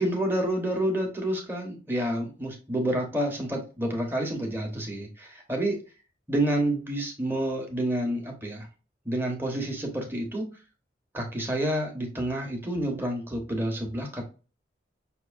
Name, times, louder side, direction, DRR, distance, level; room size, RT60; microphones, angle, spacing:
voice 1, 0.0-5.8 6.3-8.7 9.0-10.5 11.1-14.2, right 1 dB, 10° right, 1 dB, 1.1 m, -29 dB
6.0 x 2.7 x 2.5 m, 0.33 s
head